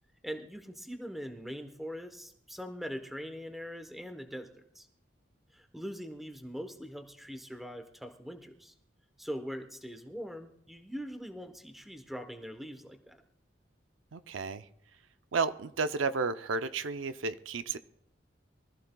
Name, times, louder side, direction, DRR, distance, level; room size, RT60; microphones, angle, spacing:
voice 1, 0.2-4.9 5.5-8.7 9.2-13.2, equal, ahead, 6 dB, 0.9 m, -42 dB
voice 2, 14.1-14.6 15.3-17.8, right 4 dB, 85° right, 11 dB, 0.6 m, -32 dB
24.0 x 14.0 x 2.3 m, 0.71 s
head